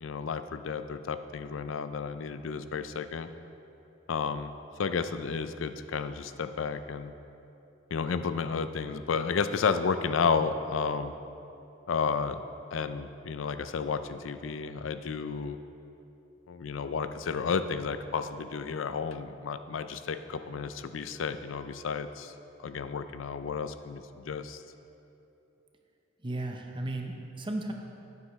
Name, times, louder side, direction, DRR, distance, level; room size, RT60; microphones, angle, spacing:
voice 1, 0.0-3.3 4.1-4.5 4.8-7.1 7.9-11.1 11.9-12.4 12.7-15.6 16.5-22.3 22.6-24.6, left 5 dB, 90° left, 11 dB, 0.4 m, -32 dB
voice 2, 26.2-27.7, right 2 dB, 25° right, 2 dB, 0.8 m, -35 dB
12.0 x 9.5 x 3.2 m, 2.8 s
head